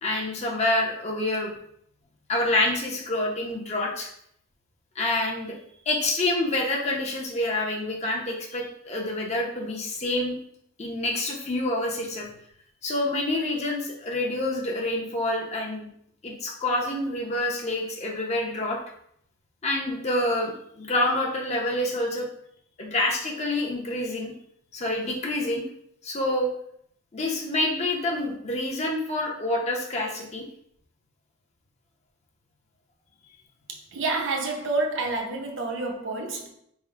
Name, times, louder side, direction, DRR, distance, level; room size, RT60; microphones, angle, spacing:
voice 1, 0.0-1.5 2.3-4.1 5.0-5.5 5.9-10.4 10.8-12.3 12.8-15.9 16.2-18.8 19.6-22.3 22.8-24.3 24.7-25.6 26.0-26.5 27.1-30.5, left 1 dB, 30° left, 0.6 m, -27 dB
voice 2, 33.7-36.5, right 3 dB, 60° right, 0.6 m, -29 dB
3.5 x 2.0 x 4.3 m
head